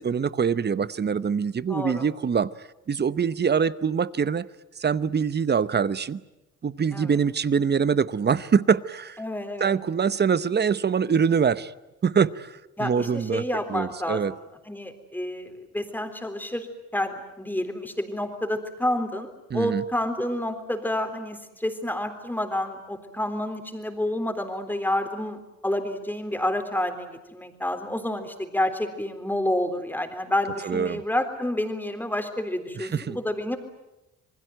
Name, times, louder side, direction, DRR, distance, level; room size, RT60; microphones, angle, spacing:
voice 1, 0.0-4.5 4.8-6.2 6.6-9.2 9.6-11.7 12.0-13.4 13.7-14.3 19.5-19.8 30.6-31.0 32.8-33.2, right 6 dB, 35° right, 17 dB, 0.9 m, -24 dB
voice 2, 1.7-2.0 6.9-7.1 9.2-9.7 12.8-14.2 14.7-33.6, left 1 dB, 5° left, 6 dB, 3.7 m, -29 dB
27.5 x 20.5 x 9.2 m, 0.96 s
cardioid pair, 90°, 30 cm